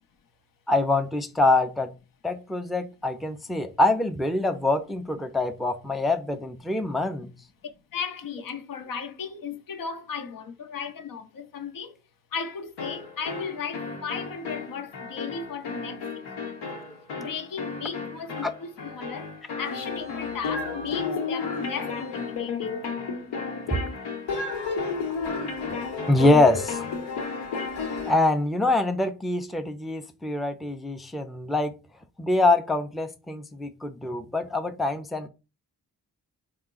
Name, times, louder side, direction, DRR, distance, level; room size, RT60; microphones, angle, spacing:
voice 1, 0.7-1.9 2.2-7.3 18.4-18.5 26.1-26.9 28.1-31.8 32.2-35.3, left 2 dB, ahead, 0.5 m, -24 dB
voice 2, 7.9-11.9 12.3-16.6 17.2-19.3 19.6-22.8, left 6 dB, 55° left, 0.7 m, -36 dB
sound 1, 12.8-28.3, left 4 dB, 80° left, 1.0 m, -33 dB
3.6 x 2.0 x 3.7 m
supercardioid pair, 40°, 39 cm